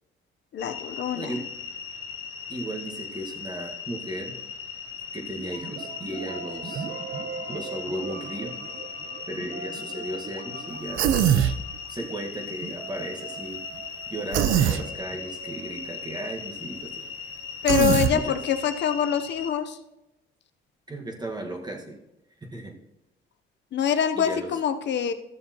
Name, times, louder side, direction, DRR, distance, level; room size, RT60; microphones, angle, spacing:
voice 1, 0.5-1.3 17.6-19.8 23.7-25.1, left 8 dB, 60° left, 9 dB, 0.8 m, -25 dB
sound 1, 0.6-19.5, left 6 dB, 90° left, 1.0 m, -38 dB
voice 2, 1.1-1.4 2.5-4.3 5.1-6.8 7.5-8.5 9.3-11.1 11.9-13.6 14.1-17.1 18.1-18.4 20.9-22.0 22.4-22.7 24.1-24.6, right 1 dB, 20° right, 0 dB, 1.5 m, -35 dB
sound 2, 5.4-17.1, right 5 dB, 45° right, 1.0 m, -41 dB
Human voice, 11.0-11.6 14.3-14.8 17.7-18.1, right 9 dB, 85° right, 0.6 m, -21 dB
13.5 x 6.9 x 2.9 m, 0.92 s
cardioid pair, 90°, 20 cm